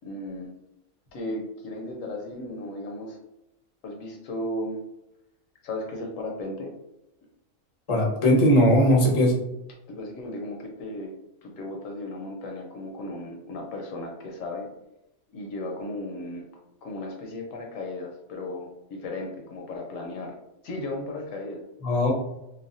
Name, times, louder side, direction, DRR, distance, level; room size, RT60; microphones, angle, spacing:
voice 1, 0.0-0.5 1.1-3.2 3.8-4.8 5.6-6.7 9.9-11.1 11.4-14.7 15.3-16.5 16.8-20.3 20.6-21.6, left 1 dB, 75° left, 1 dB, 1.0 m, -35 dB
voice 2, 7.9-9.3 21.8-22.1, equal, 35° left, -3 dB, 0.5 m, -19 dB
3.3 x 2.1 x 2.5 m, 0.89 s
omnidirectional pair, 1.5 m